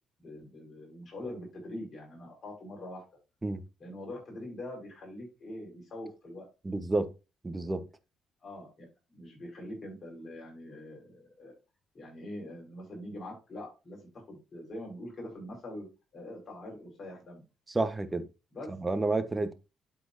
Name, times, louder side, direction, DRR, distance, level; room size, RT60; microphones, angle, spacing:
voice 1, 0.2-3.0 3.8-6.5 7.6-7.8 8.4-11.5 11.9-14.0 14.3-15.9 16.1-17.4 18.5-18.7, left 1 dB, 45° left, 4.9 m, -43 dB
voice 2, 6.6-7.1 7.4-7.8 17.7-18.2 18.7-19.5, right 2 dB, 20° right, 1.1 m, -30 dB
11.5 x 4.5 x 2.7 m
cardioid pair, 90°, 0 cm